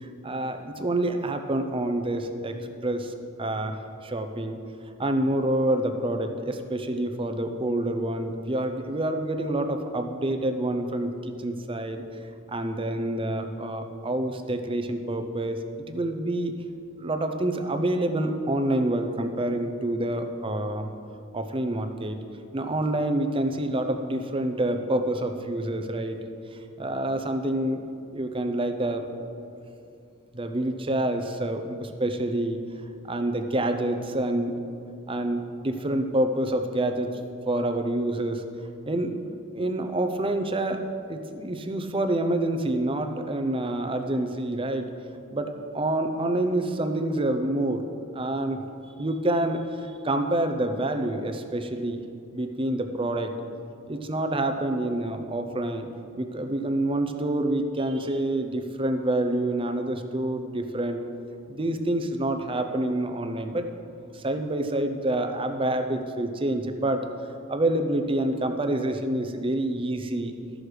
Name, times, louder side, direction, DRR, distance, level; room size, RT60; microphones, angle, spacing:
voice 1, 0.0-2.6 2.8-3.1 3.4-4.6 5.0-12.0 12.5-15.6 15.9-16.5 17.0-20.9 21.3-22.2 22.5-26.2 26.8-27.8 28.1-29.1 30.3-32.6 33.0-34.5 35.1-37.1 37.5-38.4 38.9-39.1 39.5-40.8 41.1-44.9 45.3-47.8 48.1-48.6 49.0-52.0 52.3-53.3 53.9-55.9 56.2-61.0 61.5-63.7 64.1-67.1 67.5-70.3, right 1 dB, 25° right, 7 dB, 0.6 m, -27 dB
13.0 x 6.3 x 4.9 m, 2.5 s
head